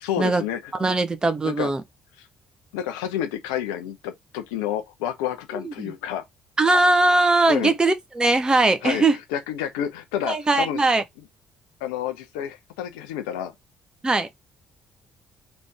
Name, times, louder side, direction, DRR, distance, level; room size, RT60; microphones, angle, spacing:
voice 1, 0.0-0.7 1.4-1.7 2.2-2.3 2.7-6.2 7.5-7.7 8.8-9.0 9.3-10.8 11.8-13.5, left 10 dB, 70° left, 0.9 m, -29 dB
voice 2, 0.8-1.8 5.5-5.9 6.6-9.2 10.3-11.0 14.0-14.3, right 2 dB, 20° right, 1.0 m, -20 dB
4.1 x 3.3 x 3.5 m
figure-of-eight pair, 50°, 4 cm